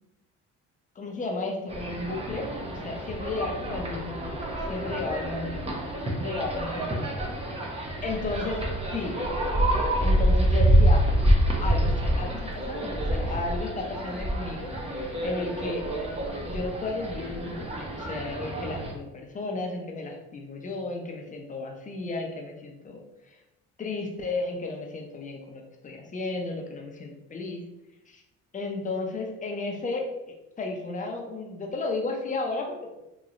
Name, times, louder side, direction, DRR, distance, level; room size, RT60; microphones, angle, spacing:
voice 1, 1.0-7.1 8.0-8.6 8.9-9.2 10.0-11.1 11.6-15.9 16.5-23.4 23.8-27.6 28.1-28.2 28.5-32.8, left 3 dB, 25° left, 1 dB, 0.7 m, -33 dB
sound 1, 1.7-18.9, right 1 dB, 20° right, 0.7 m, -27 dB
3.0 x 3.0 x 2.5 m, 0.94 s
cardioid pair, 95°, 31 cm